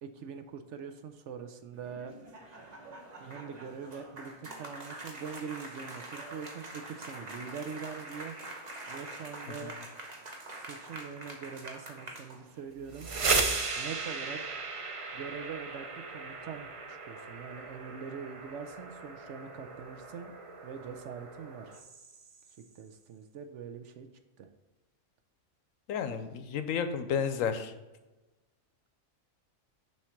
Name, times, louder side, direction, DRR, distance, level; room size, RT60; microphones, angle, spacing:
voice 1, 0.0-2.1 3.2-8.4 8.9-9.7 10.3-13.1 13.8-14.4 15.1-20.3 20.6-21.8 22.7-24.1 24.4-24.5, right 6 dB, 65° right, 8 dB, 0.8 m, -43 dB
sound 1, 1.7-12.7, right 2 dB, 35° right, 1.0 m, -45 dB
sound 2, 12.8-22.5, right 4 dB, 50° right, 0.4 m, -36 dB
voice 2, 25.9-27.7, left 7 dB, 75° left, 9 dB, 1.0 m, -32 dB
7.2 x 3.2 x 5.7 m, 1.1 s
omnidirectional pair, 1.5 m